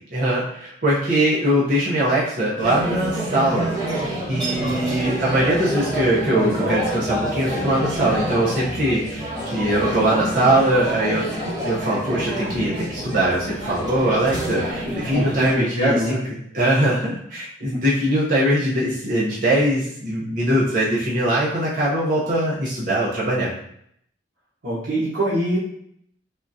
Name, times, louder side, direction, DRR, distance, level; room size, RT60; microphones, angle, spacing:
voice 1, 0.1-3.7 3.9-11.3 11.6-16.2 16.5-23.5, right 1 dB, 45° right, -7 dB, 0.7 m, -21 dB
sound 1, 2.6-15.5, right 1 dB, 20° right, 1.2 m, -27 dB
voice 2, 6.3-6.7 14.9-16.2 24.6-25.6, right 1 dB, 85° right, -10 dB, 0.9 m, -24 dB
3.6 x 2.4 x 2.6 m, 0.70 s
head